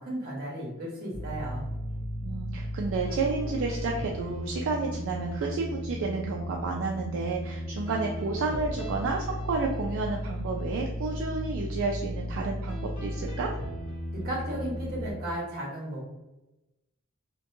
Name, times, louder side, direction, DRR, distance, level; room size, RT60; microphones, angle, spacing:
voice 1, 0.0-1.7 14.2-16.1, right 1 dB, 45° right, -4 dB, 1.0 m, -34 dB
sound 1, 1.1-15.1, equal, 25° left, 0.8 m, -35 dB
voice 2, 2.2-13.5, right 4 dB, 65° right, 0 dB, 0.3 m, -31 dB
2.8 x 2.2 x 2.6 m, 1.0 s
head